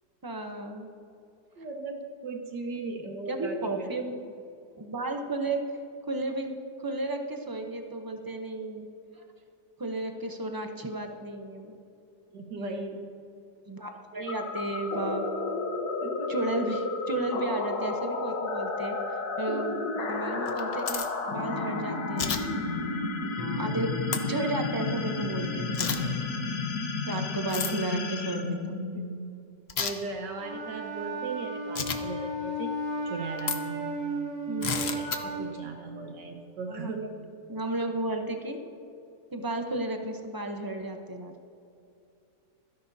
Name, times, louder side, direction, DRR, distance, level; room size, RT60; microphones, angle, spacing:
voice 1, 0.2-0.9 3.3-4.1 4.8-5.6 6.1-8.9 9.8-11.8 12.6-12.9 13.7-15.3 16.3-19.8 20.1-22.4 23.2-23.3 23.6-26.1 27.0-28.7 34.5-34.8 36.7-37.1 37.5-38.6 39.3-41.3, right 2 dB, 20° right, 4 dB, 0.5 m, -33 dB
voice 2, 1.6-3.9 7.2-7.3 7.8-8.0 12.3-13.0 14.1-14.5 16.0-16.3 16.7-16.8 23.4-23.7 28.9-29.2 29.8-32.7 33.0-34.0 34.8-37.0, right 3 dB, 80° right, 2 dB, 2.1 m, -38 dB
sound 1, 14.3-29.4, left 3 dB, 65° left, 1.6 m, -32 dB
sound 2, 20.5-21.1 22.2-22.4 24.1-24.2 25.7-26.0 27.5-27.7 29.7-29.9 31.7-32.0 33.4-33.6 34.6-35.2, left 6 dB, 50° left, 0.8 m, -30 dB
Wind instrument woodwind instrument, 30.4-35.6, right 1 dB, 60° right, 3.3 m, -34 dB
25.5 x 10.5 x 2.8 m, 2.6 s
omnidirectional pair, 1.8 m